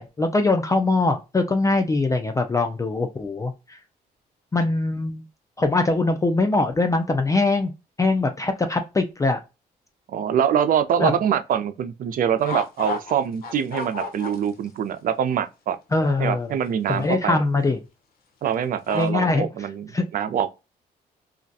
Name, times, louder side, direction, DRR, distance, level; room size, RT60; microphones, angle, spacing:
voice 1, 0.0-3.8 4.5-5.2 5.6-7.7 8.0-9.4 11.0-11.2 15.9-16.5 16.9-17.8 18.9-19.5 19.9-20.0, left 3 dB, 20° left, 0.4 m, -22 dB
voice 2, 10.1-15.8 16.2-17.4 18.4-20.5, right 8 dB, 60° right, 0.4 m, -24 dB
sound 1, 12.4-13.1 13.4-14.7 15.0-15.1 16.0-16.1 17.0-17.4 18.9-19.1, left 3 dB, 65° left, 0.7 m, -31 dB
2.3 x 2.2 x 2.6 m
cardioid pair, 75°, 16 cm